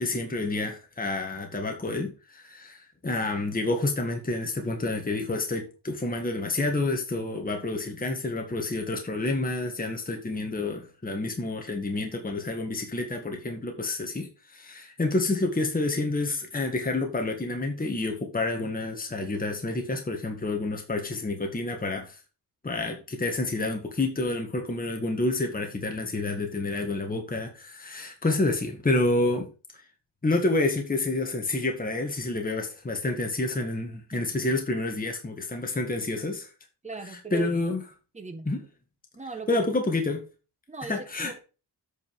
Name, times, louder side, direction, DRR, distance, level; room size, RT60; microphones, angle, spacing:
voice 1, 0.0-22.2 22.6-29.5 29.7-29.8 30.2-36.5 37.1-37.8 38.4-38.6 39.5-40.2 40.9-41.3, left 2 dB, 20° left, 1.7 m, -29 dB
voice 2, 36.8-37.5 38.1-38.5 39.1-39.6 40.7-41.0, right 5 dB, 15° right, 1.4 m, -37 dB
8.5 x 5.3 x 5.4 m
wide cardioid pair, 125°, 42 cm